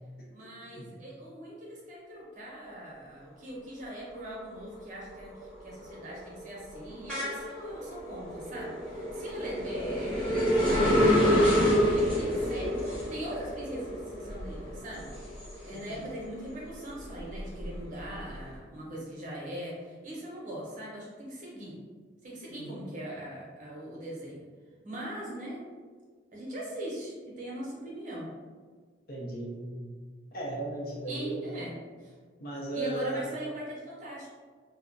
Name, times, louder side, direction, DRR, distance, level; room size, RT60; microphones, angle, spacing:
voice 1, 0.3-12.8 13.1-15.1 15.6-21.8 22.2-24.4 24.8-25.6 26.3-28.3 31.1-31.7 32.0-32.1 32.7-34.3, right 1 dB, 40° right, -5 dB, 0.8 m, -40 dB
sound 1, 4.2-4.6 5.0-16.2 16.6-18.3, equal, 5° left, 0.8 m, -28 dB
voice 2, 15.7-16.0 22.5-22.8 29.1-29.9 30.3-31.4 32.4-33.2, right 2 dB, 50° left, -3 dB, 0.6 m, -36 dB
2.3 x 2.1 x 3.7 m, 1.5 s
head